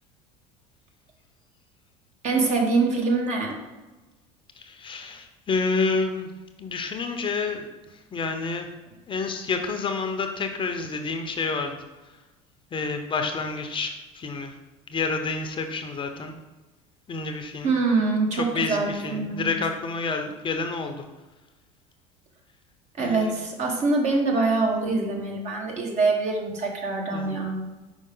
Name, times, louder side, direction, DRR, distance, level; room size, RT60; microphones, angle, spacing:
voice 1, 2.2-3.6 17.6-19.5 23.0-27.7, right 3 dB, 45° right, 1 dB, 1.4 m, -24 dB
voice 2, 4.5-6.3 6.6-8.7 9.1-12.2 12.7-14.6 14.9-16.4 17.1-17.8 18.3-21.0 23.0-23.3 27.1-27.3, left 4 dB, 30° left, 5 dB, 0.7 m, -29 dB
5.4 x 4.5 x 3.8 m, 1.1 s
supercardioid pair, 90°, 16 cm